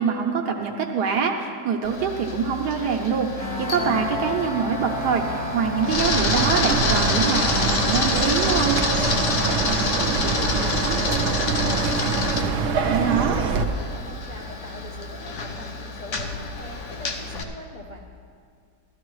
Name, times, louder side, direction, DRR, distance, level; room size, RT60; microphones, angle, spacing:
voice 1, 0.0-8.8 12.9-13.4, right 6 dB, 80° right, 2 dB, 1.4 m, -25 dB
Camera, 1.8-17.4, left 4 dB, 55° left, 1.0 m, -28 dB
sound 1, 3.4-12.0, left 1 dB, 20° left, 1.3 m, -33 dB
Chirp tweet, 5.9-13.7, right 4 dB, 60° right, 0.8 m, -24 dB
voice 2, 9.7-11.9 12.2-18.0, left 1 dB, 35° left, -1 dB, 0.7 m, -41 dB
15.5 x 12.5 x 3.1 m, 2.3 s
omnidirectional pair, 1.7 m